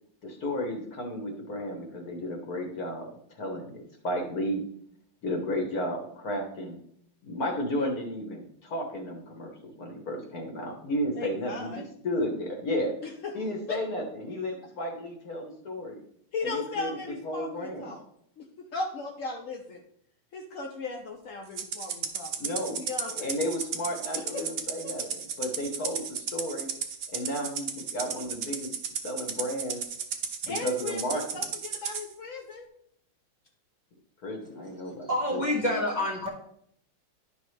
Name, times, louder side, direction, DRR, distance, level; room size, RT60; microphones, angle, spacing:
voice 1, 0.2-4.6 5.2-6.8 7.2-12.9 13.3-16.0 16.4-17.9 22.4-22.8 23.1-25.0 25.4-26.7 27.1-28.7 29.0-29.8 30.4-31.5 34.2-35.4, equal, 50° left, 2 dB, 1.5 m, -33 dB
voice 2, 11.1-11.8 13.0-13.4 13.7-13.8 16.3-18.0 18.4-19.8 20.3-23.4 24.3-24.4 24.8-25.1 30.5-32.7, left 3 dB, 75° left, 2 dB, 0.7 m, -37 dB
Rattle (instrument), 21.6-32.0, right 7 dB, 70° right, 0.7 m, -34 dB
voice 3, 34.5-36.3, left 1 dB, 25° right, -2 dB, 1.2 m, -29 dB
10.5 x 5.5 x 3.2 m, 0.69 s
omnidirectional pair, 2.3 m